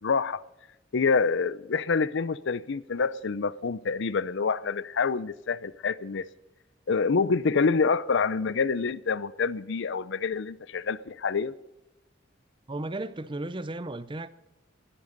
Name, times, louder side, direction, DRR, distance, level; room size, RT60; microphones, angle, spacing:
voice 1, 0.0-0.4 0.9-6.3 6.9-11.5, left 5 dB, 65° left, 0.5 m, -27 dB
voice 2, 12.7-14.3, right 2 dB, 25° right, 0.7 m, -34 dB
20.0 x 12.5 x 4.0 m
head